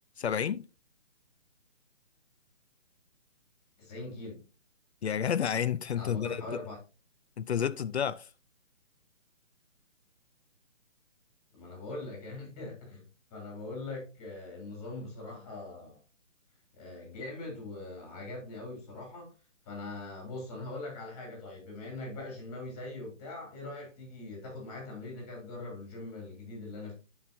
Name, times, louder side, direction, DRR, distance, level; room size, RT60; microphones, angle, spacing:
voice 1, 0.2-0.7 5.0-6.6 7.4-8.3, left 8 dB, 60° left, 0.4 m, -30 dB
voice 2, 3.8-4.4 5.9-6.8 11.5-16.0 16.7-19.3 19.6-26.9, left 2 dB, 15° left, 3.0 m, -42 dB
13.5 x 4.7 x 2.6 m
hypercardioid pair, 160°, 38 cm